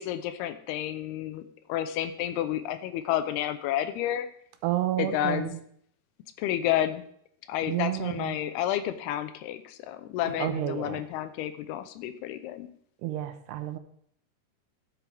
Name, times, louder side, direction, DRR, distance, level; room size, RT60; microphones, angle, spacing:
voice 1, 0.0-4.3 5.0-5.5 6.4-7.0 7.5-12.7, left 11 dB, 85° left, 11 dB, 2.6 m, -30 dB
voice 2, 4.6-5.6 7.7-8.4 10.2-11.1 13.0-13.8, right 14 dB, 90° right, 9 dB, 2.8 m, -30 dB
13.5 x 8.2 x 3.4 m, 0.65 s
omnidirectional pair, 4.8 m